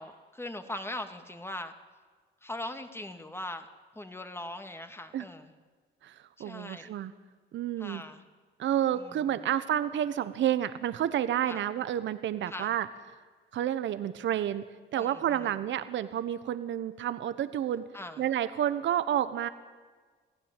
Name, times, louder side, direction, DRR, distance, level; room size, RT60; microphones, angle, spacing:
voice 1, 0.0-1.7 2.4-3.7 3.9-5.5 6.4-6.9 7.8-8.2 8.9-9.4 11.5-11.6 12.5-12.8 15.0-15.5 17.9-18.2, left 1 dB, 10° left, 7 dB, 2.3 m, -40 dB
voice 2, 6.0-7.1 7.5-8.0 8.6-12.9 13.5-14.6 14.9-17.8 18.2-19.5, right 10 dB, 70° right, 13 dB, 1.2 m, -30 dB
26.0 x 16.0 x 9.1 m, 1.5 s
cardioid pair, 90°, 20 cm